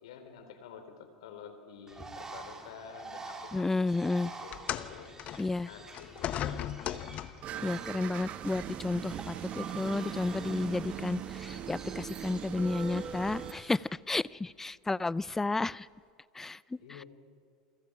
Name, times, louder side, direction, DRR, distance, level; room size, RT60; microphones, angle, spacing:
voice 1, 0.0-5.1 5.6-6.7 16.4-17.1, left 7 dB, 80° left, 7 dB, 3.6 m, -50 dB
Bird, 1.9-13.9, right 3 dB, 20° right, 3.4 m, -49 dB
voice 2, 3.5-4.3 5.4-5.7 7.6-15.9 16.3-16.6 16.9-17.0, left 3 dB, 10° left, 21 dB, 0.5 m, -32 dB
sound 1, 4.5-7.6 8.6-8.7 9.6-9.7, left 11 dB, 45° left, 1.1 m, -37 dB
sound 2, 7.4-13.5, right 9 dB, 45° right, 1.5 m, -40 dB
29.0 x 23.5 x 5.0 m, 2.3 s
hypercardioid pair, 95°, 3 cm